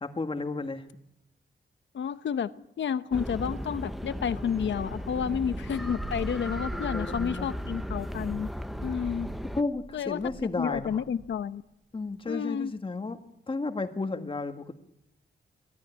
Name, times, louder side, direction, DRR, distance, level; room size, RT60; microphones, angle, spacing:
voice 1, 0.0-0.8 6.6-7.5 9.5-11.0 11.9-13.2 13.5-14.7, left 3 dB, 30° left, 7 dB, 1.7 m, -33 dB
voice 2, 1.9-8.5 8.8-9.3 9.9-10.2 10.6-11.6 12.3-12.7, left 7 dB, 85° left, 14 dB, 0.9 m, -30 dB
sound 1, 3.1-9.6, equal, ahead, 0.9 m, -36 dB
Purr, 5.0-11.3 12.1-12.2, right 2 dB, 45° right, 5.6 m, -45 dB
23.5 x 14.5 x 9.9 m, 0.85 s
wide cardioid pair, 130°, 19 cm